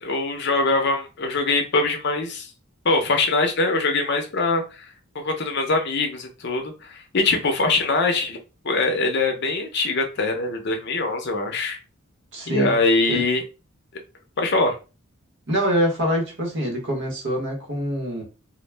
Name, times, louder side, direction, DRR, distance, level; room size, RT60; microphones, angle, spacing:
voice 1, 0.0-2.5 2.8-4.9 5.1-8.4 8.6-11.8 12.5-13.4 14.4-14.8, left 3 dB, 55° left, 4 dB, 0.6 m, -23 dB
voice 2, 12.3-12.7 13.1-13.2 15.5-18.2, equal, 60° right, 0 dB, 0.9 m, -25 dB
2.2 x 2.1 x 3.2 m, 0.32 s
head